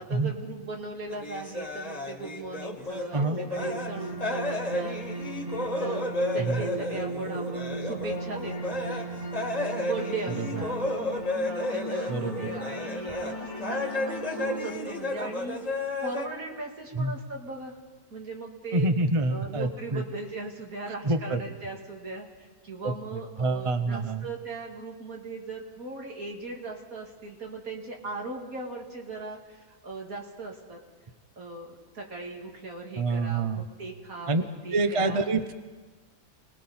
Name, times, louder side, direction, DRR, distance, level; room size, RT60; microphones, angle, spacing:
voice 1, 0.0-5.0 5.6-6.0 6.3-8.9 9.7-10.8 11.4-17.8 18.1-18.9 19.3-30.8 31.4-35.2, right 3 dB, 70° right, 0 dB, 2.9 m, -38 dB
sound 1, 1.1-3.9 4.2-13.3 13.6-16.2, left 2 dB, 25° left, 1.7 m, -32 dB
sound 2, 3.4-14.8, right 2 dB, 50° right, 5.4 m, -37 dB
voice 2, 18.7-20.0 21.0-21.4 22.8-24.2 33.0-33.6 34.3-34.4 34.7-35.6, right 2 dB, 30° right, 9 dB, 0.7 m, -27 dB
30.0 x 20.0 x 4.3 m, 1.4 s
omnidirectional pair, 1.6 m